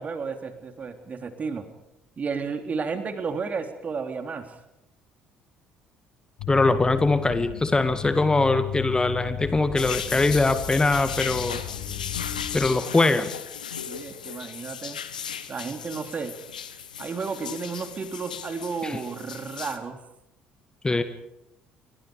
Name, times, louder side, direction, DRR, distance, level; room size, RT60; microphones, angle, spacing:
voice 1, 0.0-1.6 2.2-4.6 13.9-15.0 15.5-16.4 17.0-20.0, right 5 dB, 35° right, 7 dB, 3.5 m, -32 dB
sound 1, 6.4-12.7, left 11 dB, 60° left, 2.4 m, -35 dB
voice 2, 6.5-11.6 12.5-13.3 18.8-19.0 20.8-21.0, left 3 dB, 15° left, 10 dB, 2.0 m, -22 dB
sound 2, 9.8-19.8, left 7 dB, 80° left, 1.4 m, -36 dB
29.5 x 24.5 x 5.1 m, 0.85 s
figure-of-eight pair, 50°, 4 cm